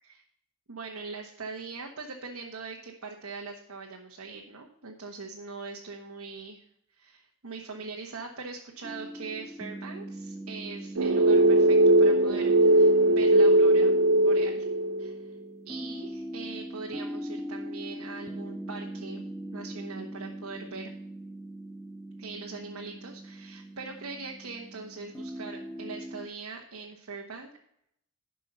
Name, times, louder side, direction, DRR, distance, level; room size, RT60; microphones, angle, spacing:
voice 1, 0.7-6.6 6.9-13.9 14.2-14.6 15.0-15.3 15.6-19.2 19.5-20.9 22.2-27.5, right 4 dB, 85° right, 0 dB, 1.2 m, -41 dB
sound 1, 8.8-26.3, right 1 dB, ahead, 0.5 m, -41 dB
sound 2, 11.0-15.2, right 1 dB, 70° right, 0.5 m, -20 dB
11.0 x 5.5 x 5.4 m, 0.73 s
head